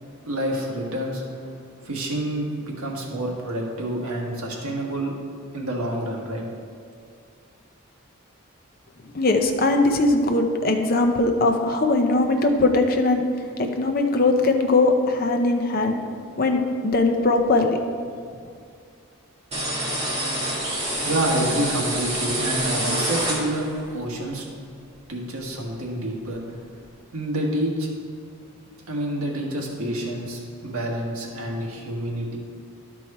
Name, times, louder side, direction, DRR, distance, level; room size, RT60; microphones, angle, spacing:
voice 1, 0.3-1.2 1.8-5.1 5.5-6.4 21.0-24.4 25.1-26.4 27.1-27.9 28.9-32.4, right 1 dB, 85° right, -1 dB, 1.5 m, -28 dB
voice 2, 9.1-13.2 13.6-15.9 16.4-17.8, left 2 dB, 40° left, 4 dB, 0.6 m, -20 dB
sound 1, 19.5-23.8, right 1 dB, 30° right, 1.5 m, -27 dB
11.5 x 4.6 x 4.2 m, 2.3 s
head